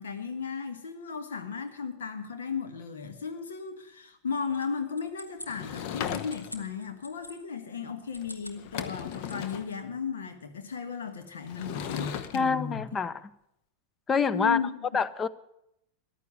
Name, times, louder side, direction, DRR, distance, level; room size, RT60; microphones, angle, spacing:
voice 1, 0.0-13.0 14.3-14.7, left 5 dB, 65° left, 8 dB, 1.4 m, -35 dB
sound 1, 4.5-7.4 8.0-8.6 8.9-9.8, left 1 dB, 85° left, 1.2 m, -46 dB
Sliding door / Wood, 5.5-6.7 8.2-8.3 8.6-9.7 11.5-12.4, left 9 dB, 50° left, 0.9 m, -36 dB
voice 2, 12.3-13.1 14.1-14.6 14.9-15.3, left 5 dB, 20° left, 17 dB, 0.6 m, -26 dB
14.0 x 10.5 x 6.9 m, 0.79 s
figure-of-eight pair, 90°, 0 cm